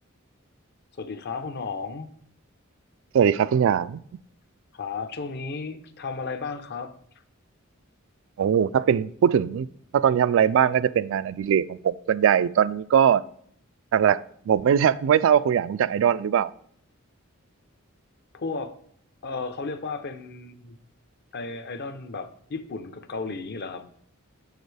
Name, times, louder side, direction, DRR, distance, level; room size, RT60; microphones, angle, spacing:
voice 1, 1.0-2.1 4.7-6.9 18.3-18.8 19.2-20.8 21.3-23.9, left 4 dB, 55° left, 10 dB, 0.7 m, -34 dB
voice 2, 3.1-4.0 8.4-9.7 9.9-13.2 13.9-14.2 14.5-16.5, right 8 dB, 65° right, 18 dB, 0.3 m, -21 dB
6.9 x 6.4 x 3.3 m, 0.64 s
head